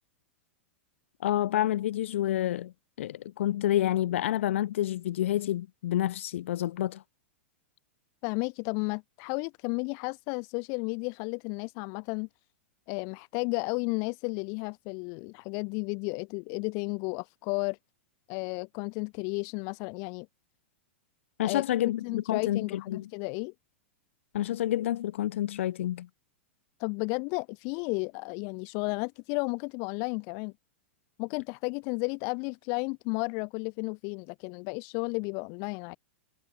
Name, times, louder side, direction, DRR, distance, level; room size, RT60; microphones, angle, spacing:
voice 1, 1.2-2.7 3.0-7.0 21.4-23.1 24.3-26.1, left 13 dB, 75° left, 1.5 m, -29 dB
voice 2, 8.2-12.3 12.9-17.8 18.3-20.3 21.4-23.5 26.8-30.5 31.2-36.0, left 35 dB, 50° left, 3.5 m, -33 dB
hypercardioid pair, 130°, 7 cm